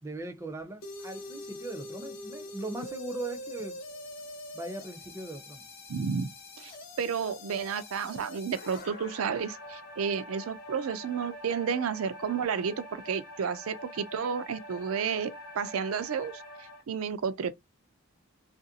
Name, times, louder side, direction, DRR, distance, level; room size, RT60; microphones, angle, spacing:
voice 1, 0.0-3.8 4.5-5.7, right 2 dB, 15° right, 0.4 m, -39 dB
sound 1, 0.8-16.8, left 1 dB, 45° left, 0.9 m, -44 dB
voice 2, 5.9-6.3 6.6-6.7 7.0-16.4 16.9-17.6, right 6 dB, 85° right, 0.4 m, -31 dB
2.8 x 2.5 x 2.7 m
head